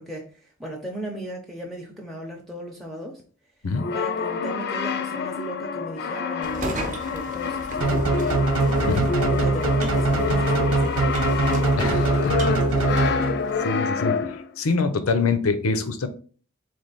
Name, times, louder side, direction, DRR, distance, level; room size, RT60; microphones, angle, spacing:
voice 1, 0.0-3.2 3.9-8.4 9.3-11.2, right 1 dB, ahead, 0 dB, 0.6 m, -36 dB
Brass instrument, 3.7-14.5, left 5 dB, 50° left, 0.4 m, -28 dB
sound 1, 6.4-13.6, right 1 dB, 35° right, 0.7 m, -36 dB
sound 2, 7.8-13.6, right 2 dB, 80° right, 0.9 m, -22 dB
voice 2, 11.8-12.5 13.6-14.3 14.6-16.1, left 4 dB, 90° left, 10 dB, 0.6 m, -25 dB
3.9 x 3.3 x 4.0 m, 0.42 s
head